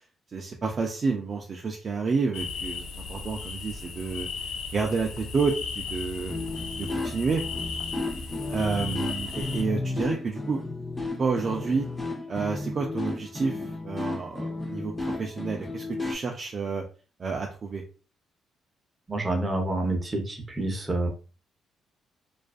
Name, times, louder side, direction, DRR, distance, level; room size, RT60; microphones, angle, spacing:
voice 1, 0.3-2.8 3.1-6.4 6.8-7.4 8.5-10.6 11.2-11.9 12.3-16.8 17.2-17.8, right 4 dB, 45° right, 1 dB, 0.4 m, -29 dB
sound 1, 2.3-9.6, left 4 dB, 85° left, 0.4 m, -36 dB
sound 2, 6.3-16.1, left 2 dB, 15° left, 0.6 m, -33 dB
voice 2, 19.1-21.1, right 2 dB, 25° right, 3 dB, 0.7 m, -28 dB
2.4 x 2.2 x 2.4 m, 0.36 s
cardioid pair, 90°, 0 cm